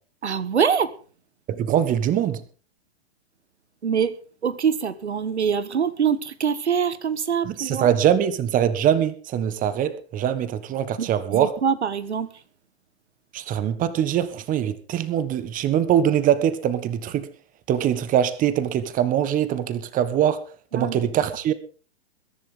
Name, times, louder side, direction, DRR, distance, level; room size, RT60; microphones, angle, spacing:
voice 1, 0.2-0.9 3.8-7.9 11.0-12.3 20.7-21.1, right 7 dB, 90° right, 1.5 m, -24 dB
voice 2, 1.5-2.4 7.4-11.5 13.3-17.3 17.7-20.4 20.7-21.5, right 10 dB, 25° right, 1.5 m, -23 dB
22.0 x 10.5 x 3.8 m
hypercardioid pair, 120°, 33 cm